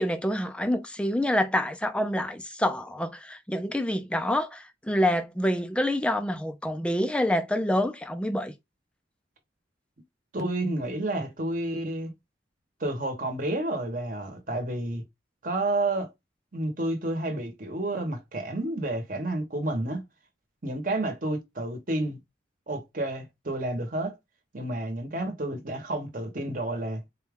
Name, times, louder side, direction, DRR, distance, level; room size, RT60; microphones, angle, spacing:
voice 1, 0.0-8.5, left 1 dB, 5° left, 0.4 m, -27 dB
voice 2, 10.3-12.1 12.8-15.0 15.4-16.1 16.5-20.0 20.6-22.2 22.7-24.1 24.5-27.0, right 2 dB, 50° right, 1.0 m, -30 dB
4.2 x 2.3 x 3.5 m
head